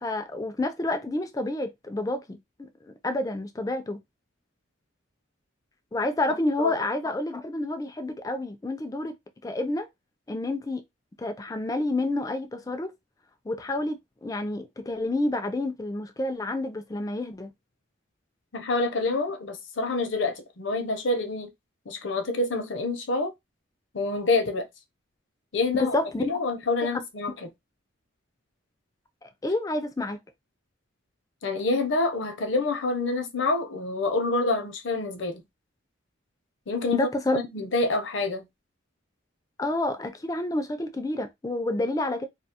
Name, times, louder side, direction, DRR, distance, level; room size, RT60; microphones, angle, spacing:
voice 1, 0.0-4.0 5.9-9.1 9.4-9.9 10.3-10.8 11.2-12.9 13.4-17.5 25.7-26.3 26.9-27.0 29.2-30.2 36.9-37.4 39.6-42.3, left 2 dB, 15° left, 0.3 m, -29 dB
voice 2, 18.5-21.5 21.9-23.3 23.9-24.7 25.5-25.9 26.2-27.3 31.4-35.4 36.7-37.1 37.5-38.5, left 2 dB, 65° left, 0.6 m, -27 dB
2.3 x 2.2 x 2.8 m
head